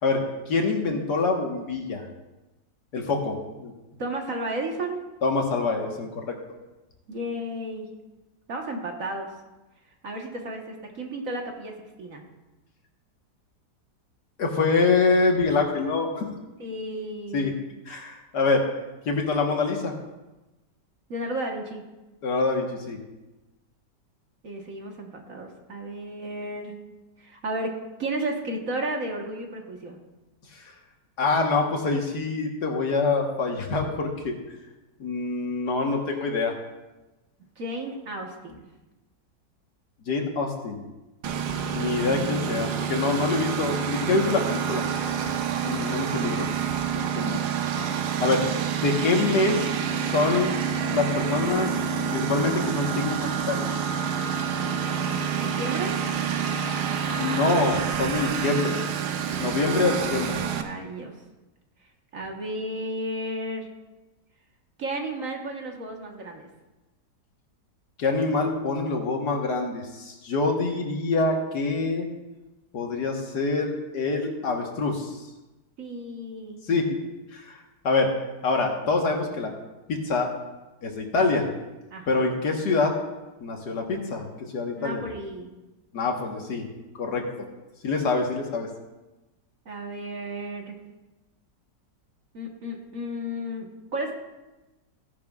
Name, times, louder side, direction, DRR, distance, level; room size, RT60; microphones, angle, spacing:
voice 1, 0.0-2.0 2.9-3.7 5.2-6.3 14.4-16.3 17.3-17.5 17.9-18.6 19.1-19.9 22.2-23.0 31.2-34.4 35.0-36.5 40.1-40.8 41.7-44.8 45.6-46.5 46.9-47.4 47.7-47.9 48.2-48.4 48.8-49.7 50.0-50.5 50.9-51.7 52.1-53.2 53.5-53.7 56.9-58.8 59.4-60.4 68.0-72.1 72.7-75.1 76.7-77.0 77.3-77.6 77.8-79.5 79.9-80.3 80.8-81.5 82.1-82.9 83.4-84.3 84.5-85.0 85.9-86.7 87.0-87.5 87.8-88.7, left 3 dB, 70° left, 2 dB, 1.9 m, -25 dB
voice 2, 4.0-5.0 7.1-7.9 8.5-9.3 10.0-12.2 16.6-17.5 21.1-21.8 24.4-26.7 27.2-27.7 28.0-30.0 37.6-38.6 55.3-55.9 59.6-60.2 60.6-61.1 62.1-63.7 64.8-66.5 75.8-76.6 81.9-82.3 84.8-85.5 89.6-90.7 92.3-94.1, right 1 dB, 50° right, 1 dB, 1.7 m, -33 dB
Engine, 41.2-60.6, right 7 dB, 70° right, 1.3 m, -28 dB
16.5 x 10.5 x 2.4 m, 1.1 s
omnidirectional pair, 1.8 m